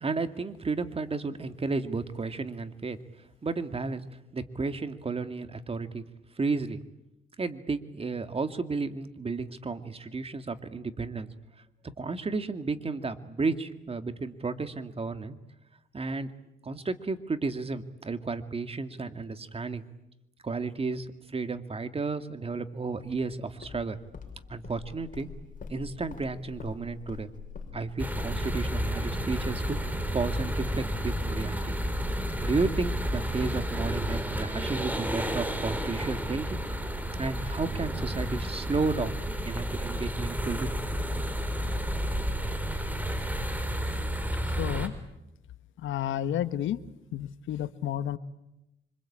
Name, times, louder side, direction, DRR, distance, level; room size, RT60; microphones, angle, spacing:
voice 1, 0.0-3.0 3.4-4.0 4.3-6.0 6.4-6.8 7.4-11.3 12.0-15.4 15.9-16.3 16.6-19.9 20.4-24.0 24.5-25.3 25.7-27.3 27.7-31.8 32.4-36.6 37.2-39.1 39.4-40.7, right 4 dB, 30° right, 9 dB, 2.3 m, -32 dB
Walk footsteps, 23.0-30.9, left 5 dB, 45° left, 5.3 m, -45 dB
sound 1, 28.0-44.9, equal, 10° right, 4.4 m, -31 dB
voice 2, 44.6-44.9 45.8-46.8 47.1-48.2, left 11 dB, 75° left, 13 dB, 1.3 m, -31 dB
27.0 x 25.0 x 8.8 m, 0.90 s
cardioid pair, 90°, 20 cm